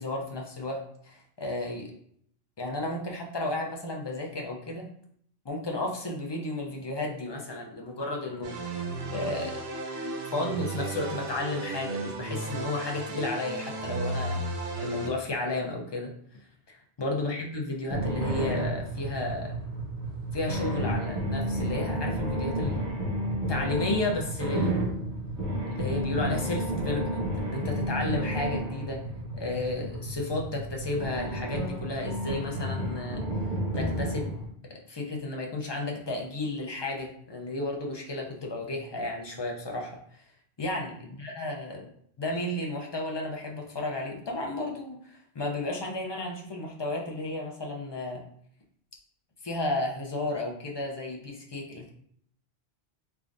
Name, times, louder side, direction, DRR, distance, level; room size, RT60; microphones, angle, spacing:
voice 1, 0.0-1.9 2.6-4.9 5.4-8.8 9.1-9.6 10.3-14.4 14.8-16.1 16.7-19.5 20.3-22.8 23.5-24.8 25.7-29.0 29.3-33.2 33.7-34.4 34.7-40.0 40.6-40.9 41.2-41.9 42.2-48.2 49.4-51.9, left 2 dB, 35° left, -1 dB, 0.5 m, -33 dB
sound 1, 8.4-15.1, right 2 dB, 65° right, 0.8 m, -34 dB
sound 2, 17.9-34.5, right 1 dB, 90° right, 1.4 m, -31 dB
3.5 x 3.4 x 2.5 m, 0.65 s
omnidirectional pair, 1.1 m